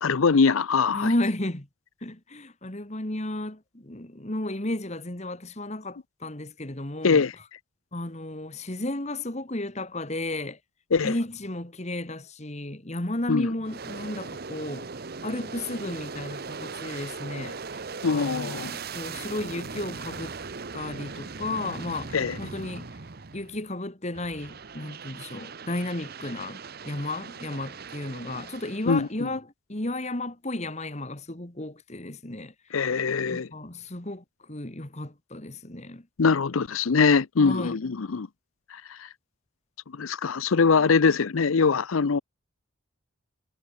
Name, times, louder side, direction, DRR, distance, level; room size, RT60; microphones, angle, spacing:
voice 1, 0.0-1.1 7.0-7.3 10.9-11.1 13.3-13.5 18.0-18.7 22.1-22.4 28.9-29.3 32.7-33.5 36.2-38.3 38.7-39.1 39.9-42.2, left 5 dB, 80° left, 0.6 m, -23 dB
voice 2, 0.9-1.7 2.0-7.3 7.9-10.6 11.0-20.4 20.7-22.9 23.3-32.5 33.3-36.1 37.4-37.8, left 1 dB, 35° left, 2.0 m, -33 dB
Aircraft, 13.6-23.7 24.1-29.1, right 4 dB, 50° right, 0.9 m, -39 dB
head